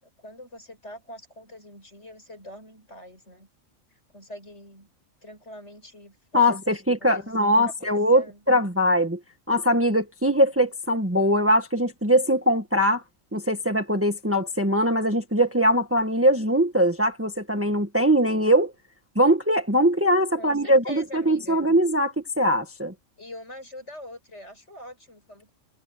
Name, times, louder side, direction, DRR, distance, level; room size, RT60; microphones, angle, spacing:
voice 1, 0.0-3.5 4.1-4.9 5.2-8.4 20.4-21.7 23.2-25.5, left 1 dB, 60° left, 8.4 m, -44 dB
voice 2, 6.3-9.2 9.5-13.0 13.3-18.7 19.1-22.9, equal, 10° right, 1.5 m, -21 dB
omnidirectional pair, 1.3 m